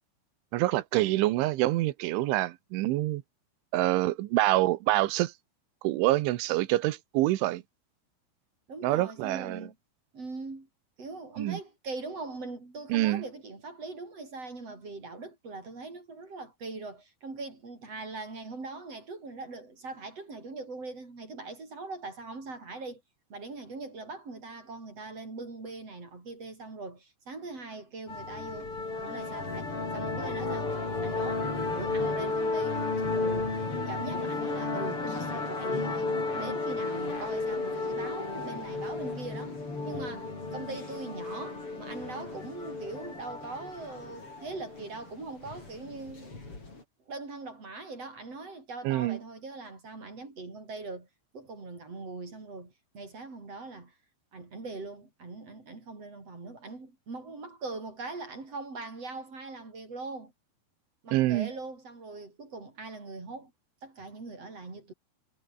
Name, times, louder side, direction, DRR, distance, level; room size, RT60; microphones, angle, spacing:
voice 1, 0.5-3.2 3.7-5.3 5.8-7.6 8.8-9.7 11.4-11.6 12.9-13.2 48.8-49.2 61.1-61.5, right 17 dB, 80° right, 3.4 m, -26 dB
voice 2, 8.7-9.7 10.1-10.7 11.0-23.0 23.3-39.6 39.8-46.6 47.1-51.1 51.3-53.9 54.3-60.3 61.0-63.5 63.8-64.9, right 3 dB, 30° right, 6.6 m, -41 dB
sound 1, 28.1-46.8, left 3 dB, 25° left, 6.7 m, -33 dB
omnidirectional pair, 5.6 m